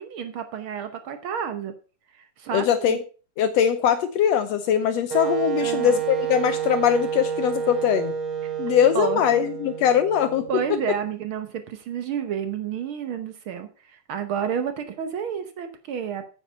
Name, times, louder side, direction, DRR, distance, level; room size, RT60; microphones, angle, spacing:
voice 1, 0.0-1.7 2.1-3.0 5.6-6.0 6.5-6.6 8.9-9.4 10.5-16.2, right 8 dB, 70° right, 8 dB, 1.3 m, -30 dB
voice 2, 2.5-3.0 3.4-8.1 8.6-10.5, left 9 dB, 75° left, 10 dB, 1.7 m, -21 dB
Wind instrument woodwind instrument, 5.1-10.9, right 9 dB, 55° right, 1.7 m, -29 dB
9.0 x 9.0 x 5.4 m, 0.37 s
omnidirectional pair, 3.5 m